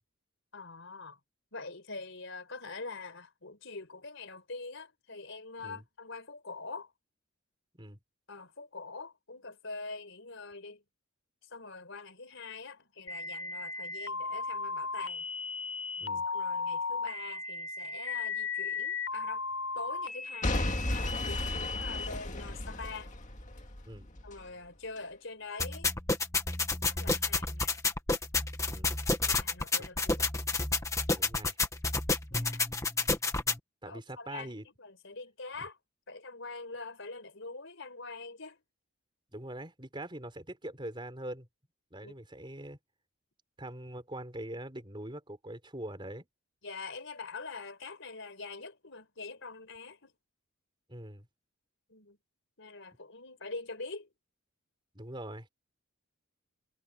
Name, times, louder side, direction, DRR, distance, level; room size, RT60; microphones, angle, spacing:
voice 1, 0.5-1.2 1.5-6.9 8.3-10.8 11.5-15.3 16.2-19.4 19.7-23.1 24.2-25.9 26.8-27.8 29.3-30.3 32.3-32.7 33.8-35.8 36.1-38.6 42.0-42.1 46.6-50.1 51.9-52.2 52.6-54.1, left 3 dB, 60° left, 4.8 m, -44 dB
sound 1, 13.1-22.1, left 4 dB, 80° left, 4.5 m, -36 dB
Boom / Shatter / Crushing, 20.4-24.4 25.0-25.1, left 1 dB, 35° left, 2.0 m, -34 dB
sound 2, 25.6-33.6, left 3 dB, 15° left, 1.6 m, -30 dB
voice 2, 31.1-31.6 33.8-34.6 35.6-35.7 39.3-41.5 41.9-42.8 43.6-46.3 50.9-51.3 54.9-55.5, right 1 dB, 20° right, 4.3 m, -43 dB
head